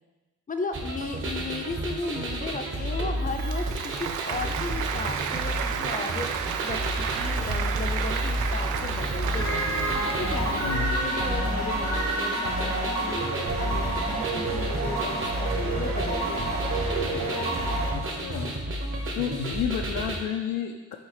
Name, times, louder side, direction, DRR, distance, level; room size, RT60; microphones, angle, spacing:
voice 1, 0.5-13.2 13.6-16.9, left 3 dB, 25° left, 5 dB, 0.6 m, -36 dB
sound 1, 0.7-20.2, right 1 dB, 40° right, 1.3 m, -31 dB
Applause, 3.3-10.7, right 8 dB, 85° right, 0.5 m, -32 dB
sound 2, 9.3-17.9, right 2 dB, 65° right, 1.9 m, -29 dB
voice 2, 10.6-10.9 17.9-18.5 19.1-21.0, left 9 dB, 75° left, 2 dB, 0.5 m, -31 dB
6.3 x 3.9 x 4.9 m, 1.2 s
cardioid pair, 90°, 30 cm